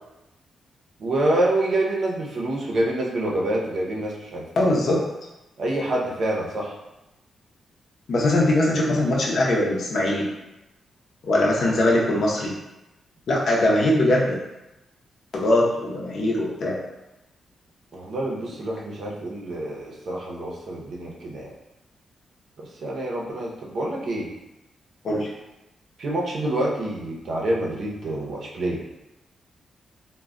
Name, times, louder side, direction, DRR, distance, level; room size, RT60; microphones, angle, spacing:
voice 1, 1.0-4.7 5.6-6.7 17.9-21.5 22.6-24.3 26.0-28.8, right 1 dB, 55° right, -3 dB, 0.6 m, -27 dB
voice 2, 4.6-5.0 8.1-10.3 11.2-12.5 13.3-14.3 15.3-16.8 25.0-25.3, left 1 dB, 55° left, -3 dB, 0.6 m, -21 dB
2.2 x 2.1 x 3.6 m, 0.96 s
wide cardioid pair, 155°, 0 cm